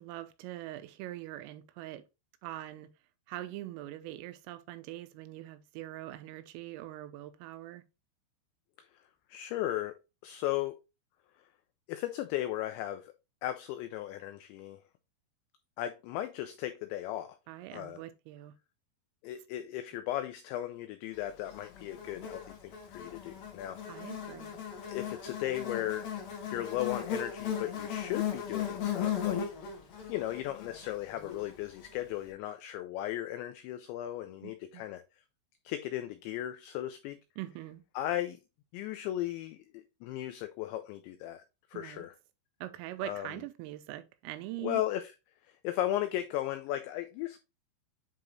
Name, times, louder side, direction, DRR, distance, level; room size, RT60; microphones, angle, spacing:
voice 1, 0.0-2.0 2.4-2.9 3.3-7.8 17.5-18.5 23.9-24.5 34.4-34.8 37.4-37.8 41.7-42.1 42.6-44.8, right 15 dB, 85° right, 3.3 m, -43 dB
voice 2, 9.3-9.9 10.2-10.8 11.9-13.1 13.4-14.8 15.8-17.4 17.7-18.0 19.2-24.0 24.9-29.7 30.1-35.0 35.6-37.2 38.0-38.4 38.7-41.4 41.7-42.2 43.0-43.4 44.6-45.1 45.4-47.4, left 13 dB, 90° left, 2.5 m, -36 dB
Buzz, 21.5-31.9, left 9 dB, 55° left, 3.1 m, -37 dB
9.7 x 3.8 x 3.1 m
omnidirectional pair, 5.9 m